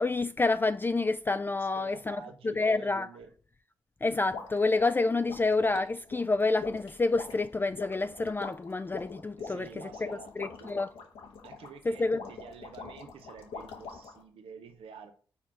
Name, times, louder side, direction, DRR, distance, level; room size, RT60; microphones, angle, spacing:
voice 1, 0.0-2.2 2.4-3.1 4.0-9.7 10.4-10.9 11.9-12.2, left 3 dB, 20° left, 0.3 m, -28 dB
voice 2, 1.6-3.3 9.4-11.1 11.4-15.1, right 6 dB, 80° right, 0.8 m, -49 dB
sound 1, 4.3-14.2, left 5 dB, 85° left, 1.2 m, -44 dB
5.6 x 4.4 x 4.8 m
supercardioid pair, 50°, 9 cm